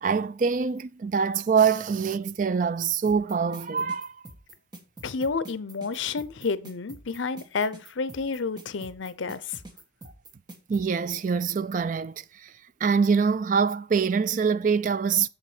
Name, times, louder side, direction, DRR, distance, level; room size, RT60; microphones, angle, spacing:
voice 1, 0.0-4.2 10.7-12.5 12.8-15.3, right 6 dB, 40° right, 0.3 m, -24 dB
sound 1, 3.1-10.9, right 2 dB, 20° right, 1.2 m, -45 dB
voice 2, 5.0-9.6, left 4 dB, 80° left, 0.6 m, -30 dB
7.3 x 7.0 x 4.9 m
head